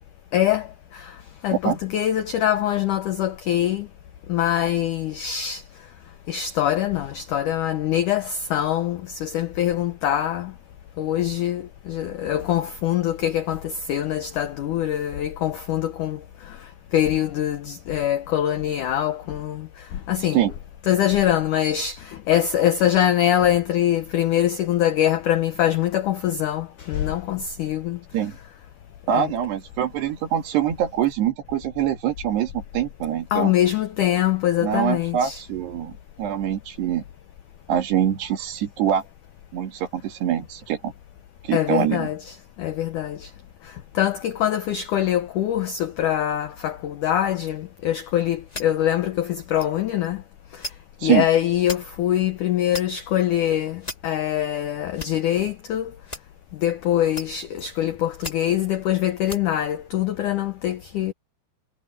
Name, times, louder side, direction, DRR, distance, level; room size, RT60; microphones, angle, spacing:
voice 1, 0.3-0.7 1.4-3.9 4.3-5.6 6.3-10.5 11.0-16.2 16.9-19.7 20.1-20.4 20.9-28.0 29.1-29.3 33.3-35.4 41.5-43.2 44.0-50.2 51.0-55.9 56.6-61.1, left 11 dB, 85° left, 1.7 m, -23 dB
voice 2, 29.1-33.5 34.6-37.0 37.7-39.0 39.5-40.9 41.4-42.1 51.0-51.3, right 10 dB, 70° right, 4.2 m, -24 dB
sound 1, 47.4-47.5 48.1-48.2 48.5-48.9 49.5-49.7 50.0-50.1 50.6-50.7 51.6-51.8 52.4-53.2 53.8-54.0 54.6-55.1 56.0-56.2 57.1-57.3 57.5-57.9 58.2-58.9 59.2-59.4 59.7-59.8, left 1 dB, 15° left, 1.5 m, -35 dB
omnidirectional pair, 5.0 m